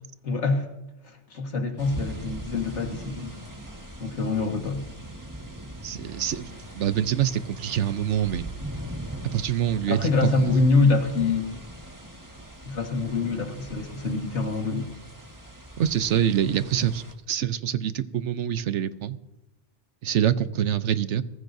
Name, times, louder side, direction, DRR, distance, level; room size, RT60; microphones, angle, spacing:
voice 1, 0.2-0.7 1.0-3.3 4.0-4.9 9.9-11.5 12.6-14.9, left 3 dB, 80° left, 4 dB, 2.0 m, -25 dB
sound 1, 1.8-17.1, right 1 dB, 15° right, 1.6 m, -41 dB
voice 2, 5.8-8.5 9.3-10.5 15.8-19.2 20.0-21.2, right 10 dB, 85° right, 13 dB, 1.1 m, -25 dB
22.5 x 15.0 x 2.7 m, 0.93 s
omnidirectional pair, 1.2 m